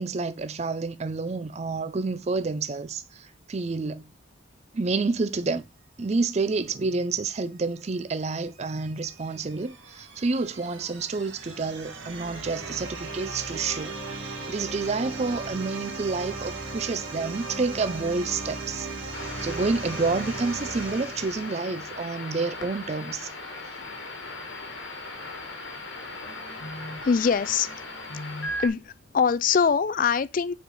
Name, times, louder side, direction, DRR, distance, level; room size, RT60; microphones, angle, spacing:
voice 1, 0.0-4.1 4.7-5.6 6.0-14.0 14.5-18.9 19.4-23.3, right 3 dB, 35° right, 0.4 m, -29 dB
sound 1, 8.4-22.2, right 3 dB, 75° right, 1.8 m, -37 dB
sound 2, 19.1-28.7, left 2 dB, 70° left, 1.5 m, -37 dB
voice 2, 27.0-27.7 28.6-30.5, left 6 dB, 45° left, 0.3 m, -23 dB
5.8 x 4.4 x 5.4 m
head